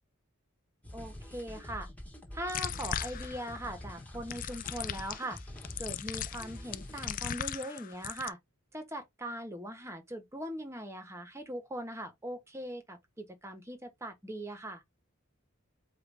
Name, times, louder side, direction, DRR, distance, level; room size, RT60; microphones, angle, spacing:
sound 1, 0.8-7.3, left 1 dB, 5° left, 1.4 m, -46 dB
voice 1, 0.9-1.9 2.3-5.4 5.8-8.4 8.7-14.8, right 1 dB, 15° right, 1.1 m, -40 dB
sound 2, 2.5-3.6 4.3-8.3, left 10 dB, 40° left, 0.3 m, -38 dB
4.8 x 2.5 x 3.4 m
head